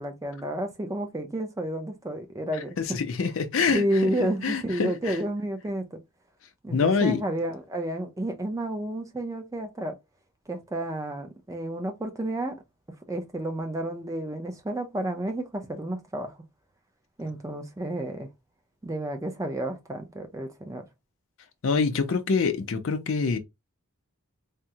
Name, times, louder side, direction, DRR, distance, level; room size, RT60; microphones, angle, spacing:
voice 1, 0.0-3.0 3.7-6.0 6.6-9.9 10.5-12.6 13.1-16.3 17.2-18.3 18.8-20.9, right 1 dB, 15° right, 0.4 m, -31 dB
voice 2, 2.9-3.8 4.4-5.1 6.7-7.2 21.6-23.4, left 5 dB, 65° left, 0.5 m, -25 dB
3.5 x 2.0 x 2.7 m
head